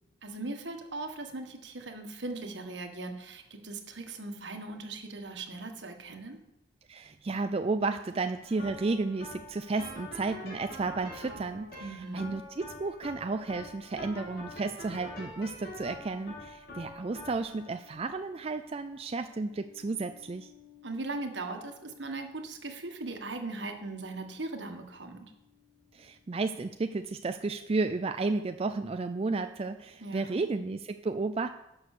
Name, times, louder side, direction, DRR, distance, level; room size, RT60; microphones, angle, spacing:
voice 1, 0.2-6.4 11.8-12.4 20.8-25.3 30.0-30.5, right 2 dB, 75° right, 5 dB, 1.6 m, -39 dB
voice 2, 6.9-20.5 25.9-31.5, right 3 dB, 35° right, 8 dB, 0.4 m, -32 dB
sound 1, 8.4-25.6, left 1 dB, 60° left, 3.0 m, -47 dB
11.5 x 6.3 x 6.6 m, 0.86 s
head